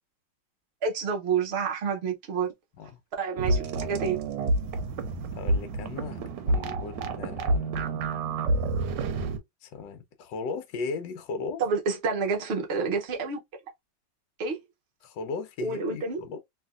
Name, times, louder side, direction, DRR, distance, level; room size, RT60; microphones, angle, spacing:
voice 1, 0.8-2.5 3.2-4.2 11.6-13.4 14.4-14.6 15.6-16.2, right 5 dB, 60° right, 0.6 m, -28 dB
sound 1, 3.4-9.4, right 2 dB, 80° right, 1.3 m, -28 dB
voice 2, 5.3-7.7 9.6-11.6 15.0-16.4, left 4 dB, 80° left, 1.3 m, -37 dB
3.2 x 2.7 x 2.3 m
omnidirectional pair, 2.0 m